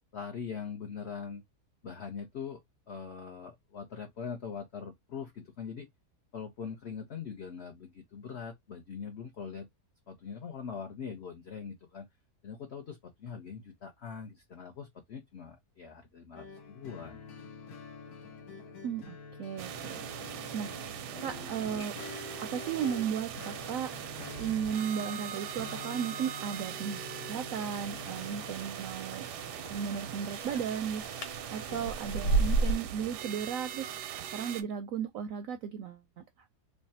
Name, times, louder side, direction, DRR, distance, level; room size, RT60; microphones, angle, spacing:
voice 1, 0.1-1.4 1.8-2.6 2.9-5.9 6.3-9.7 10.1-12.1 12.4-17.2 31.7-31.9, left 6 dB, 55° left, 0.8 m, -42 dB
sound 1, 16.4-28.6, left 5 dB, 70° left, 1.3 m, -46 dB
voice 2, 18.8-20.7 21.2-21.9 22.4-23.9 24.4-29.3 29.7-31.3 31.5-34.0 34.3-36.2, right 8 dB, 70° right, 0.8 m, -35 dB
sound 2, 19.6-34.6, right 10 dB, 85° right, 1.2 m, -41 dB
sound 3, 27.5-32.8, right 3 dB, 90° left, 1.8 m, -33 dB
3.3 x 2.3 x 4.0 m
omnidirectional pair, 1.7 m